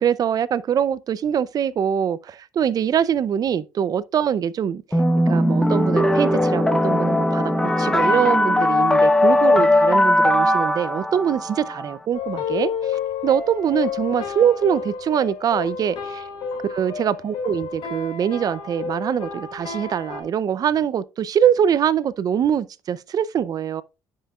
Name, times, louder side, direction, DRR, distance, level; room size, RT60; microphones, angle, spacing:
voice 1, 0.0-4.8 5.3-7.5 7.8-16.2 16.7-23.8, right 8 dB, 45° right, 0.5 m, -23 dB
sound 1, 4.9-11.9, left 1 dB, 10° left, 0.8 m, -19 dB
sound 2, 12.1-20.2, left 6 dB, 70° left, 2.8 m, -30 dB
10.0 x 5.6 x 2.4 m
cardioid pair, 105°, 9 cm